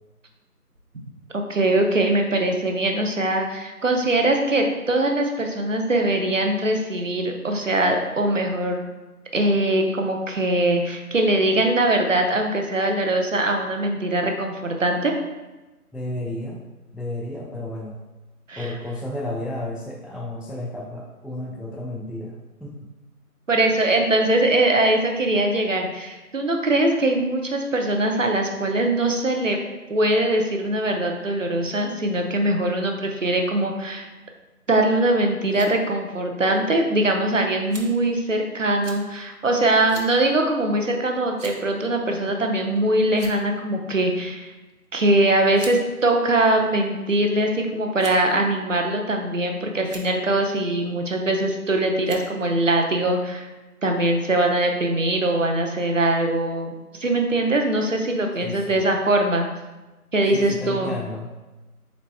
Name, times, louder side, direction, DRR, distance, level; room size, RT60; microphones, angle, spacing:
voice 1, 1.3-8.8 9.3-15.1 18.5-18.7 23.5-29.6 29.9-34.1 34.7-44.5 44.9-53.5 53.8-59.5 60.1-60.9, right 1 dB, 55° right, 3 dB, 0.6 m, -22 dB
voice 2, 15.9-16.6 16.9-18.0 18.6-22.8 58.4-58.8 60.3-61.3, left 1 dB, ahead, -1 dB, 0.3 m, -32 dB
sound 1, 35.4-35.7 36.5-36.6 37.7-38.1 38.8-39.0 39.9-40.1 40.5-40.6 41.4-41.7 42.6-42.8 43.1-43.6 44.7-44.9 45.5-45.8 46.6-47.2 48.0-48.3 49.1-49.5 49.8-50.1 51.3-51.6 52.0-52.3, right 2 dB, 85° right, 1.0 m, -41 dB
4.0 x 3.3 x 3.2 m, 1.1 s
figure-of-eight pair, 170°, 46 cm